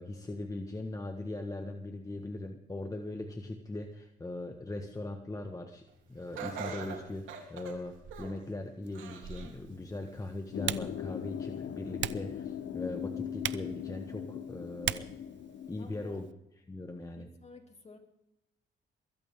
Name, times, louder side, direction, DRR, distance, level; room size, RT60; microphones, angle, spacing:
voice 1, 0.0-5.8 6.1-15.1 15.7-16.3 16.7-17.3, left 2 dB, 15° left, 4 dB, 1.5 m, -40 dB
Laughter, 6.3-8.5 8.9-9.6 10.1-10.2 11.1-11.2, right 6 dB, 85° right, 3.3 m, -42 dB
Typing, 8.8-16.3, right 12 dB, 65° right, 0.7 m, -42 dB
sound 1, 10.5-15.8, left 9 dB, 65° left, 0.9 m, -39 dB
voice 2, 15.8-16.2 17.2-18.0, left 3 dB, 35° left, 3 dB, 3.3 m, -52 dB
22.0 x 15.0 x 3.7 m, 0.86 s
cardioid pair, 90°, 20 cm